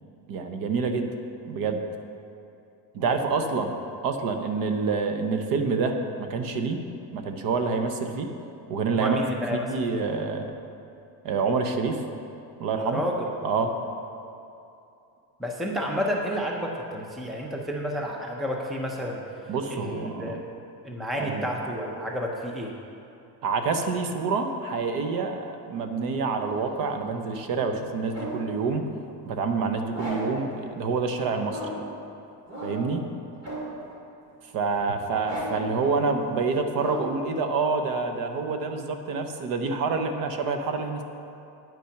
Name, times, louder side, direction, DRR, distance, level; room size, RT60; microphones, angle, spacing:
voice 1, 0.3-1.1 1.5-1.8 2.9-3.7 4.0-6.8 7.1-8.3 8.7-9.2 9.5-10.5 11.2-12.0 12.6-13.0 13.4-13.7 19.5-20.4 21.1-21.5 23.4-28.8 29.2-31.6 32.6-33.1 34.5-41.0, right 4 dB, 55° right, 6 dB, 0.9 m, -27 dB
voice 2, 8.9-10.0 12.8-13.2 15.4-19.2 19.7-20.4 20.8-22.7, equal, ahead, 0 dB, 0.5 m, -30 dB
sound 1, 26.4-28.5 29.9-30.5 31.4-32.0 32.5-33.0 33.4-33.9 35.2-35.8 36.7-37.3, equal, 40° right, 2.3 m, -36 dB
9.2 x 8.5 x 5.8 m, 2.7 s
cardioid pair, 180°, 40 cm